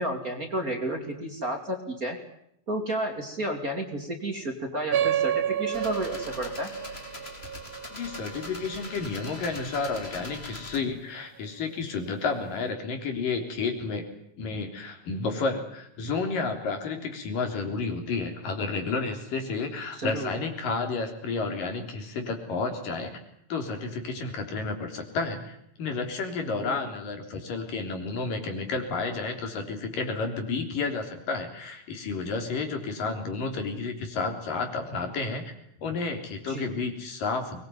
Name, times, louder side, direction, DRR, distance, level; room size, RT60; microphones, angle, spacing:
voice 1, 0.0-2.2 2.7-6.7 20.0-20.3 26.5-26.9 36.5-36.7, right 1 dB, 25° right, 4 dB, 2.9 m, -32 dB
sound 1, 4.9-9.9, right 10 dB, 60° right, 1.9 m, -30 dB
sound 2, 5.7-10.8, left 2 dB, 15° left, 3.5 m, -42 dB
voice 2, 7.9-14.1 14.4-23.2 23.5-35.5 35.8-37.6, left 4 dB, 75° left, 5 dB, 5.1 m, -31 dB
23.5 x 21.0 x 9.5 m, 0.73 s
omnidirectional pair, 3.9 m